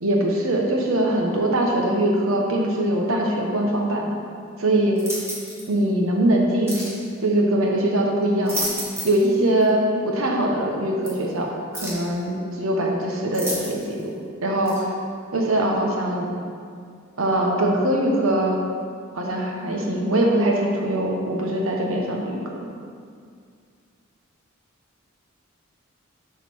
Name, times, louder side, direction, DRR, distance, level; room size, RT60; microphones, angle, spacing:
voice 1, 0.0-4.1 4.6-4.9 5.7-6.8 7.2-8.7 9.0-11.5 11.7-14.1 14.4-14.9 15.3-16.3 17.2-18.6 19.2-22.5, right 1 dB, 80° right, 0 dB, 1.2 m, -22 dB
sound 1, 5.0-5.7 6.7-7.0 8.2-9.3 9.6-9.7 11.0-11.1 11.7-12.1 13.3-14.0 14.7-14.8, right 1 dB, 15° right, 1.8 m, -31 dB
7.3 x 4.1 x 6.2 m, 2.2 s
head